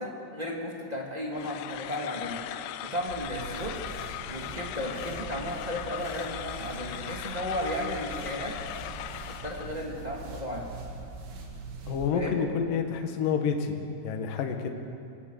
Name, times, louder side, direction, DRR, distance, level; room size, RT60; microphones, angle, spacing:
voice 1, 0.0-2.4 2.9-3.7 4.3-8.6 9.3-10.7 12.1-12.4, left 1 dB, 15° right, -3 dB, 1.5 m, -34 dB
sound 1, 1.3-9.8, left 12 dB, 80° left, 2.8 m, -39 dB
sound 2, 3.1-12.1, right 4 dB, 90° right, 5.2 m, -42 dB
voice 2, 11.9-13.8 14.0-14.7, left 6 dB, 60° left, 4 dB, 2.6 m, -28 dB
25.0 x 19.0 x 6.7 m, 2.4 s
omnidirectional pair, 5.4 m